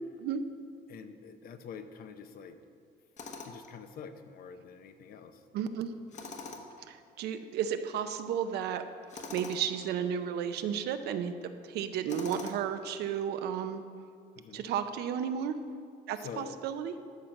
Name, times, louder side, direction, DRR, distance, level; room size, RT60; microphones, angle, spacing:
voice 1, 0.9-2.6 3.4-5.4 14.4-14.7 16.2-16.6, left 6 dB, 60° left, 9 dB, 0.8 m, -46 dB
Tools, 3.2-3.7 6.1-6.8 9.1-9.7 12.1-12.8, left 4 dB, 45° left, 1.1 m, -43 dB
voice 2, 5.5-5.9 6.9-8.8 9.3-13.8 14.5-15.6 16.1-16.9, right 8 dB, 75° right, 9 dB, 0.7 m, -33 dB
12.0 x 4.5 x 6.5 m, 2.3 s
cardioid pair, 110°, 17 cm